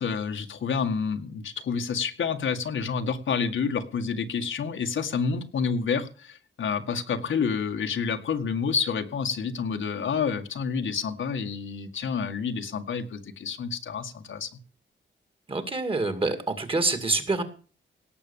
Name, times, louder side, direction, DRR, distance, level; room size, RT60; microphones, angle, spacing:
voice 1, 0.0-14.5, left 6 dB, 75° left, 6 dB, 1.9 m, -29 dB
voice 2, 15.5-17.4, right 3 dB, 25° right, 9 dB, 2.2 m, -26 dB
18.0 x 7.8 x 7.0 m, 0.38 s
wide cardioid pair, 180°, 20 cm